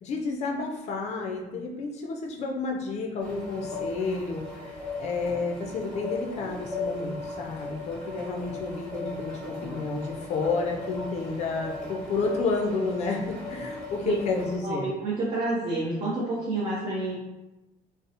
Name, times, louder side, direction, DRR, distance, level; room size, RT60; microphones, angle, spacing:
voice 1, 0.0-14.9, left 3 dB, 45° left, 1 dB, 0.4 m, -31 dB
sound 1, 3.2-14.6, left 3 dB, 5° left, 1.0 m, -37 dB
voice 2, 14.6-17.2, right 2 dB, 40° right, -7 dB, 0.6 m, -29 dB
2.7 x 2.0 x 2.5 m, 1.0 s
cardioid pair, 160°, 16 cm